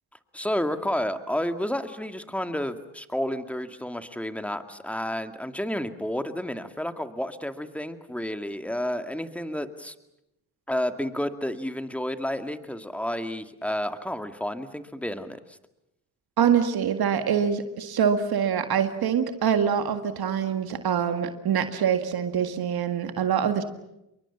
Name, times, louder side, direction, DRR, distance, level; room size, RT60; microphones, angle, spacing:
voice 1, 0.3-9.9 10.7-15.6, left 1 dB, 5° left, 9 dB, 2.2 m, -31 dB
voice 2, 16.4-23.6, right 8 dB, 65° right, 9 dB, 1.9 m, -24 dB
28.0 x 23.0 x 7.3 m, 0.86 s
supercardioid pair, 60°, 39 cm